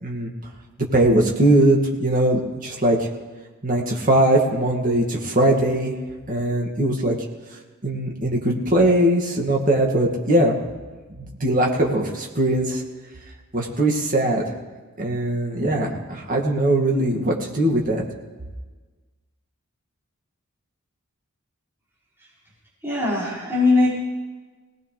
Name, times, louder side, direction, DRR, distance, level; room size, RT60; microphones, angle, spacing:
voice 1, 0.9-3.1 3.6-5.9 6.3-7.1 7.8-10.6 11.2-12.8 13.5-14.4 15.0-18.1, right 1 dB, 40° right, -1 dB, 2.1 m, -20 dB
voice 2, 22.8-24.0, left 3 dB, 10° right, -10 dB, 5.4 m, -20 dB
21.0 x 18.5 x 3.4 m, 1.3 s
head